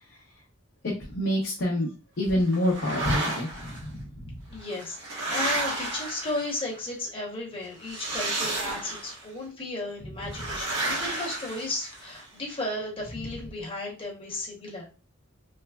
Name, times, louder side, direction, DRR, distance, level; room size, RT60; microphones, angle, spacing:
voice 1, 0.8-1.9 2.2-4.3, left 1 dB, 60° left, -3 dB, 0.6 m, -27 dB
sound 1, 2.5-3.8 4.6-6.8 7.8-9.3 10.3-12.2, right 2 dB, 80° right, 1.2 m, -32 dB
voice 2, 4.5-14.9, left 2 dB, 25° left, -2 dB, 0.9 m, -34 dB
3.2 x 2.0 x 2.3 m, 0.32 s
head